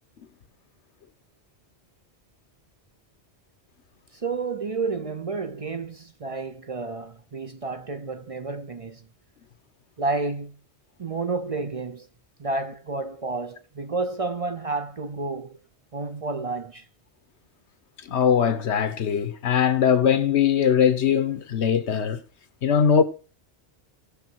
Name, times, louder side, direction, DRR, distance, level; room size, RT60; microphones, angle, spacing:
voice 1, 4.1-9.0 10.0-10.6 11.0-12.1 12.4-15.6 15.9-16.9, right 3 dB, 40° right, 0.6 m, -30 dB
voice 2, 18.0-22.2 22.6-23.0, left 8 dB, 85° left, 1.2 m, -21 dB
16.5 x 6.6 x 4.5 m
omnidirectional pair, 1.1 m